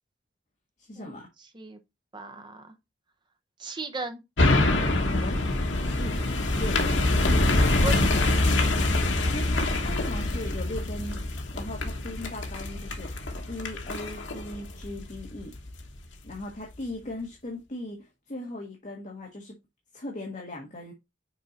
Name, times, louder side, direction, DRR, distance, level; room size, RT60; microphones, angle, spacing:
voice 1, 0.8-1.3 5.1-5.4 5.8-6.2 6.5-7.2 9.3-11.2 11.5-13.2 13.5-15.6 16.2-19.6 19.9-20.9, left 1 dB, 40° left, 1.5 m, -38 dB
voice 2, 2.1-2.8 3.6-4.2 7.8-8.3, right 3 dB, 25° right, 0.9 m, -36 dB
sound 1, 4.4-15.8 16.3-16.4, left 2 dB, 85° left, 1.3 m, -25 dB
6.3 x 4.4 x 4.1 m
head